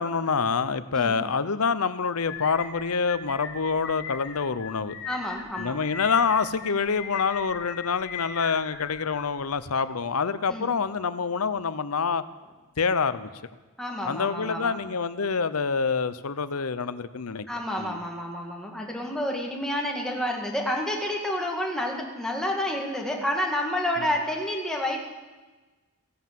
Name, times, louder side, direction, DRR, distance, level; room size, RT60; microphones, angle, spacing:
voice 1, 0.0-5.0 5.6-12.2 12.8-13.3 14.0-17.5 17.8-18.0, left 5 dB, 85° left, 14 dB, 0.8 m, -26 dB
sound 1, 2.3-9.6, left 6 dB, 55° left, 1.7 m, -39 dB
voice 2, 5.1-5.8 10.5-10.7 13.8-14.8 17.5-25.1, left 1 dB, 5° left, 0 dB, 2.1 m, -29 dB
16.0 x 11.5 x 7.6 m, 1.3 s
head